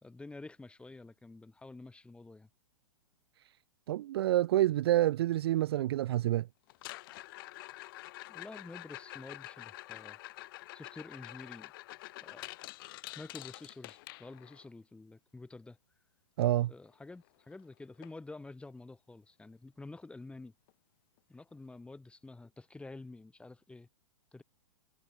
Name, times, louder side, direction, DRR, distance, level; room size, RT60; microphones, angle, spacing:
voice 1, 0.0-2.5 8.3-10.2 10.7-11.7 12.2-12.6 13.2-15.8 16.7-20.5 21.3-23.9 24.3-24.4, left 3 dB, 5° left, 4.3 m, -49 dB
voice 2, 3.9-6.5 16.4-16.7, right 14 dB, 50° right, 0.4 m, -28 dB
sound 1, 6.7-14.7 16.9-17.0 17.3-17.6 18.0-18.1 18.7-18.8 20.7-20.8, left 20 dB, 45° left, 1.0 m, -47 dB
figure-of-eight pair, 110°, 17 cm